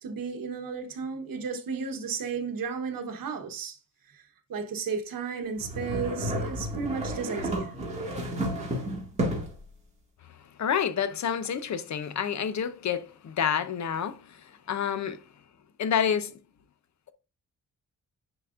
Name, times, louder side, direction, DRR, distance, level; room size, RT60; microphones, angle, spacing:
voice 1, 0.0-3.8 4.1-4.2 4.5-7.7, right 5 dB, 80° right, 1.1 m, -33 dB
sound 1, 5.6-9.6, equal, 20° right, 2.0 m, -31 dB
voice 2, 10.6-15.2 15.8-16.3, left 8 dB, 55° left, 0.7 m, -29 dB
10.0 x 4.0 x 2.5 m
wide cardioid pair, 170°, 33 cm